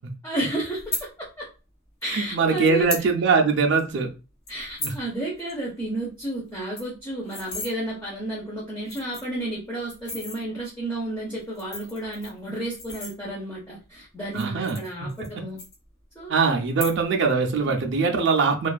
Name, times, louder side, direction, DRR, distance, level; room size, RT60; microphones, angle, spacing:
voice 1, 0.2-0.8 1.2-1.5 2.0-2.8 4.5-15.6 16.2-16.3 17.6-17.7, right 1 dB, 10° left, -5 dB, 0.6 m, -32 dB
sound 1, 0.7-1.0 2.0-2.1 2.6-3.1 3.4-3.5 3.8-4.0 4.5-5.0 5.4-5.5 5.8-5.9 6.2-6.3 6.6-7.7 8.4-8.5 8.8-9.4 9.9-10.4 11.4-13.6 14.2-15.3 15.6-16.2 16.6-17.2 17.5-17.9, left 3 dB, 55° left, 1.0 m, -35 dB
voice 2, 2.1-4.1 4.8-4.9 14.3-15.3 16.3-18.7, right 4 dB, 60° right, 4 dB, 0.4 m, -22 dB
2.4 x 2.3 x 2.3 m, 0.32 s
head